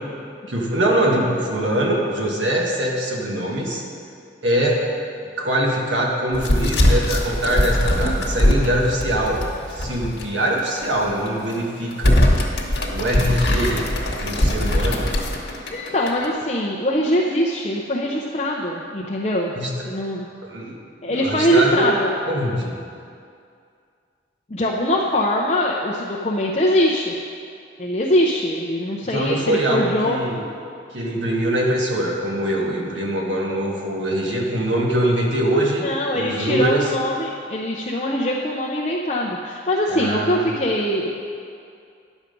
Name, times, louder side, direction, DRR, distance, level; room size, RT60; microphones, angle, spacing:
voice 1, 0.5-3.8 4.4-4.9 5.4-9.4 9.7-12.2 12.9-13.8 14.2-15.1 19.5-19.8 20.5-22.0 22.2-22.8 29.0-30.4 30.9-35.8 36.1-36.9 39.9-40.5, right 1 dB, 85° right, -2 dB, 1.6 m, -23 dB
sound 1, 6.3-10.2 10.6-10.7 11.3-11.5 11.9-16.3, left 1 dB, 65° left, 1.3 m, -21 dB
voice 2, 15.7-19.5 19.8-20.3 21.0-22.1 24.5-27.1 27.8-30.2 35.8-41.1, equal, 35° left, -3 dB, 0.6 m, -22 dB
10.5 x 7.2 x 5.3 m, 2.4 s
head